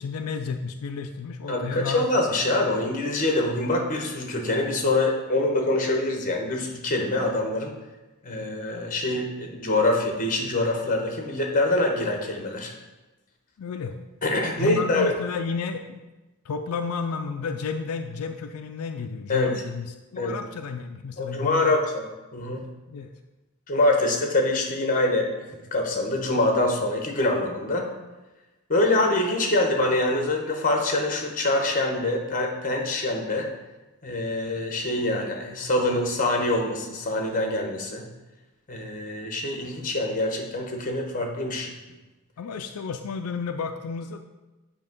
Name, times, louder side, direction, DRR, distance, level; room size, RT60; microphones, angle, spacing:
voice 1, 0.0-2.1 13.6-14.0 14.6-16.0 16.4-21.8 22.9-23.1 42.4-44.2, left 5 dB, 85° left, 6 dB, 0.4 m, -32 dB
voice 2, 1.5-7.7 8.2-12.7 14.2-15.1 19.3-19.6 20.1-20.4 21.2-22.0 22.3-22.6 23.7-27.9 28.7-33.5 34.0-38.1 38.7-41.7, left 2 dB, 35° left, 2 dB, 1.0 m, -25 dB
8.7 x 2.9 x 5.2 m, 1.1 s
head